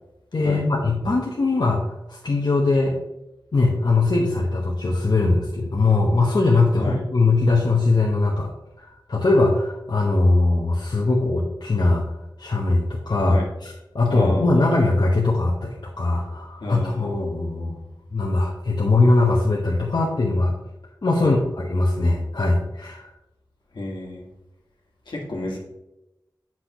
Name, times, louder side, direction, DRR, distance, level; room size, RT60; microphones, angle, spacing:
voice 1, 0.3-2.9 3.5-8.5 8.8-12.0 12.4-17.8 18.1-20.5 21.0-23.0, left 3 dB, 65° left, -3 dB, 1.1 m, -21 dB
voice 2, 14.1-14.7 16.6-17.1 21.2-21.4 23.7-24.3 25.1-25.6, left 1 dB, 85° left, -1 dB, 1.8 m, -30 dB
8.1 x 6.0 x 3.0 m, 0.91 s
wide cardioid pair, 60°, 8 cm